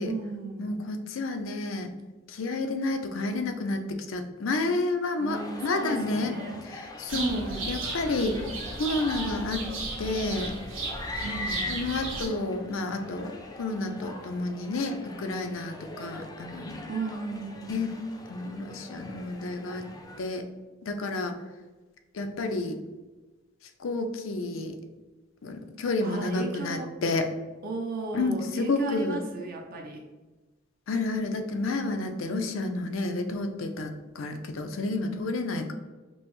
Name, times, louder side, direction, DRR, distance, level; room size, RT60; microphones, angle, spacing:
voice 1, 0.1-0.8 5.2-6.6 7.1-7.7 11.2-11.7 16.9-17.9 26.0-26.9 27.6-30.0, right 3 dB, 45° right, 0 dB, 0.5 m, -35 dB
voice 2, 0.6-1.9 2.3-6.4 6.7-8.4 8.8-9.7 10.0-10.5 11.7-16.9 17.7-17.9 18.3-19.8 20.2-20.5 20.8-21.3 22.1-22.8 23.8-24.8 25.4-27.3 28.1-29.2 30.9-35.7, left 2 dB, 80° left, 6 dB, 0.5 m, -30 dB
sound 1, 5.3-20.2, left 2 dB, 20° left, 0.4 m, -41 dB
sound 2, 7.1-12.3, right 3 dB, 70° right, 1.1 m, -35 dB
5.3 x 2.0 x 3.0 m, 1.2 s
head